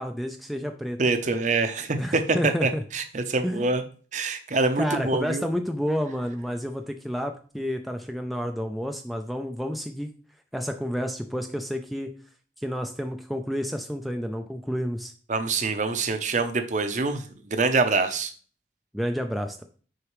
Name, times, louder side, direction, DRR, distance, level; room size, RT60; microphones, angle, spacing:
voice 1, 0.0-1.0 2.0-2.8 3.4-3.7 4.8-10.1 10.5-12.1 12.6-15.1 18.9-19.6, equal, ahead, 4 dB, 0.4 m, -30 dB
voice 2, 1.0-3.8 4.1-5.5 15.3-18.3, right 3 dB, 45° right, 9 dB, 0.7 m, -25 dB
6.4 x 4.9 x 3.1 m, 0.40 s
head